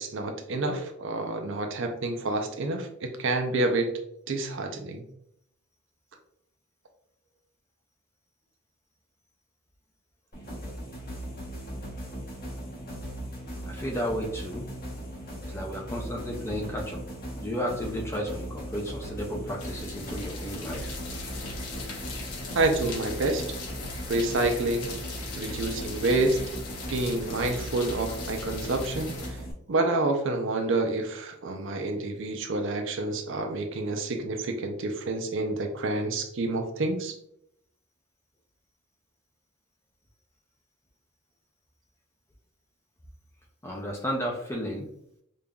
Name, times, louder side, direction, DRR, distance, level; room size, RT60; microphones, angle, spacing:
voice 1, 0.0-3.9 4.3-5.0 22.5-23.4 24.1-24.9 25.4-26.4 26.9-29.4 29.7-37.2, right 2 dB, 55° right, 5 dB, 0.5 m, -28 dB
sound 1, 10.3-29.5, right 1 dB, 40° left, 1.0 m, -38 dB
voice 2, 13.7-14.6 15.5-17.0 17.4-20.9 43.6-44.9, equal, 10° left, 0 dB, 0.4 m, -33 dB
sound 2, 19.6-29.3, left 3 dB, 90° left, 0.9 m, -39 dB
5.2 x 2.4 x 2.2 m, 0.76 s
head